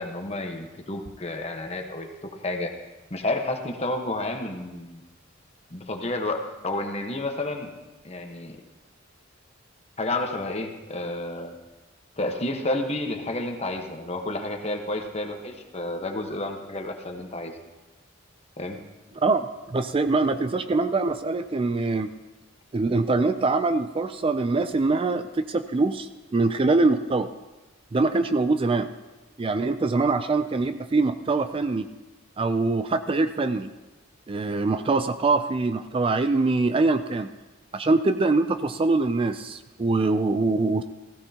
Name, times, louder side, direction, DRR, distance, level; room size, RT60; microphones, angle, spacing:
voice 1, 0.0-2.1 2.4-2.7 3.1-5.0 5.7-7.7 8.0-8.6 10.0-11.5 12.2-17.5 18.6-18.8, left 2 dB, 30° left, 4 dB, 1.2 m, -30 dB
voice 2, 19.2-22.1 22.7-27.3 27.9-28.9 29.4-31.9 32.4-33.7 34.3-37.3 37.7-40.8, right 3 dB, 25° right, 10 dB, 0.4 m, -23 dB
16.0 x 15.5 x 2.9 m, 1.1 s
head